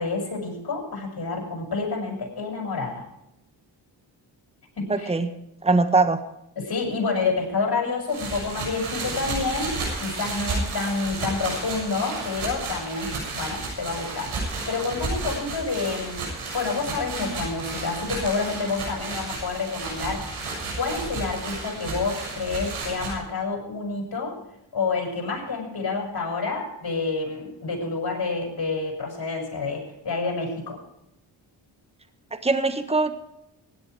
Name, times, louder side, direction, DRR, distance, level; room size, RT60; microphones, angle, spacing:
voice 1, 0.0-3.0 4.8-5.1 6.6-20.5 20.8-24.4 24.7-30.8, left 4 dB, 50° left, 1 dB, 7.3 m, -28 dB
voice 2, 4.9-5.3 5.6-6.2 32.3-33.2, right 3 dB, 10° right, 10 dB, 1.4 m, -21 dB
sound 1, 8.1-23.1, right 3 dB, 80° right, 7.0 m, -32 dB
16.0 x 11.5 x 4.9 m, 0.84 s
cardioid pair, 55°, 49 cm